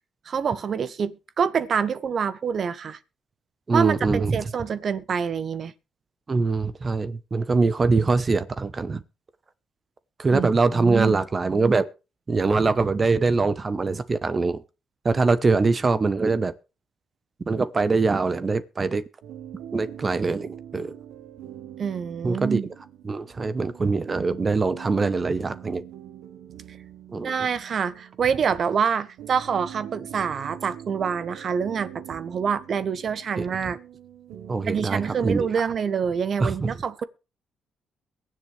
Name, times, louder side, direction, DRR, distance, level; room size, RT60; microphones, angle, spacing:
voice 1, 0.2-3.0 3.7-5.7 10.3-11.1 21.8-22.7 26.7-26.8 27.2-33.8 34.7-37.0, right 6 dB, 50° right, 1.2 m, -26 dB
voice 2, 3.7-4.4 6.3-9.0 10.2-11.9 12.3-14.6 15.0-16.5 17.5-19.0 19.7-20.9 22.2-22.6 23.0-25.8 27.1-27.3 34.5-35.4 36.4-36.7, right 3 dB, 30° right, 1.0 m, -23 dB
sound 1, 19.2-35.3, right 10 dB, 85° right, 1.2 m, -43 dB
22.5 x 7.7 x 3.4 m
cardioid pair, 90°, 0 cm